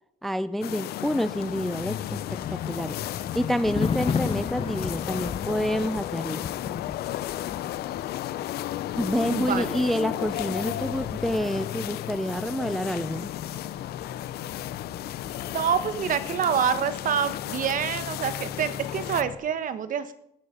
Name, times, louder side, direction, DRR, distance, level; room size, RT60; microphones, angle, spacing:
voice 1, 0.2-3.0 3.3-6.5 9.0-13.3, equal, ahead, 0.4 m, -28 dB
sound 1, 0.6-19.2, left 14 dB, 70° left, 0.6 m, -34 dB
Engine starting, 1.3-19.3, left 8 dB, 55° left, 1.5 m, -41 dB
Thunder, 1.9-16.4 16.7-17.0, left 6 dB, 30° left, 0.7 m, -36 dB
voice 2, 9.3-9.7 15.5-20.1, right 7 dB, 50° right, 1.3 m, -27 dB
17.5 x 10.0 x 5.2 m
cardioid pair, 110°, 17 cm